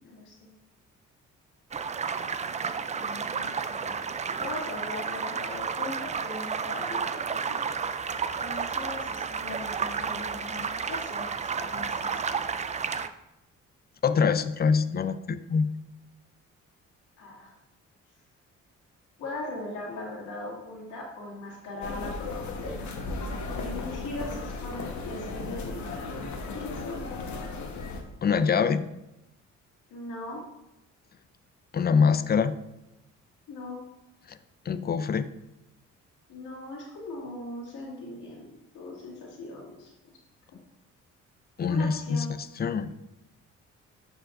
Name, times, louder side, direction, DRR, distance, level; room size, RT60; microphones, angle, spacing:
voice 1, 0.0-0.5 2.9-4.0 4.4-7.6 8.4-11.3 11.6-12.1 17.2-17.5 19.2-23.0 23.6-26.2 26.5-27.0 29.9-30.4 33.5-33.8 36.3-38.5 38.7-39.9 41.7-42.3, left 2 dB, 85° left, -4 dB, 2.1 m, -39 dB
sound 1, 1.7-13.1, right 6 dB, 25° right, 0.4 m, -32 dB
voice 2, 14.0-15.7 28.2-28.8 31.7-32.5 34.3-34.4 34.7-35.3 41.6-42.9, left 5 dB, 30° left, 13 dB, 0.5 m, -24 dB
sound 2, 21.8-28.0, left 3 dB, 70° left, 1.3 m, -35 dB
11.5 x 5.0 x 2.5 m, 0.94 s
cardioid pair, 90°, 30 cm